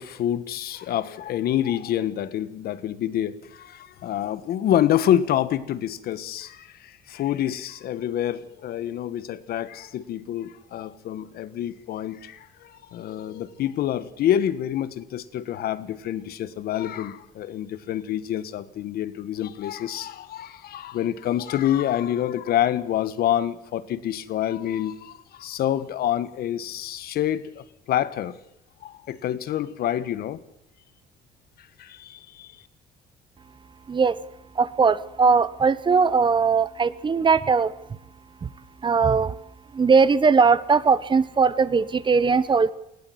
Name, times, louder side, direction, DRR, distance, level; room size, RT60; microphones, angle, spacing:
voice 1, 0.0-28.4 28.8-30.4 31.6-32.5, left 11 dB, 65° left, 1.4 m, -27 dB
voice 2, 34.5-37.7 38.4-38.5 38.8-39.3 39.7-42.7, right 5 dB, 30° right, 1.0 m, -20 dB
20.0 x 17.0 x 7.9 m
cardioid pair, 110°, 17 cm